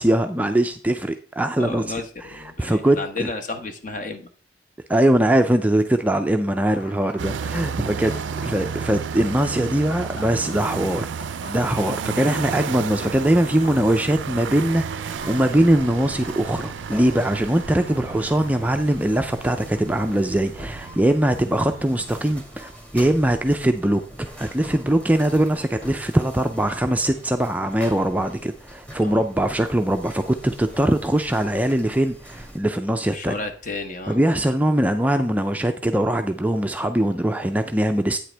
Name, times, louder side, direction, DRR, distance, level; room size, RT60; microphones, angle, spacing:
voice 1, 0.0-1.8 2.6-3.3 4.9-8.1 8.4-11.1 11.5-33.4 34.1-38.2, right 1 dB, 10° right, 6 dB, 0.4 m, -21 dB
voice 2, 1.6-4.3 8.0-8.3 29.0-29.3 33.1-34.2, left 3 dB, 45° left, 5 dB, 1.1 m, -32 dB
sound 1, 6.6-18.5, left 2 dB, 75° left, 2.1 m, -45 dB
sound 2, 7.2-22.4, right 6 dB, 80° right, 0.4 m, -33 dB
sound 3, 15.1-32.6, right 1 dB, 10° left, 1.8 m, -42 dB
8.7 x 7.7 x 3.3 m, 0.41 s
head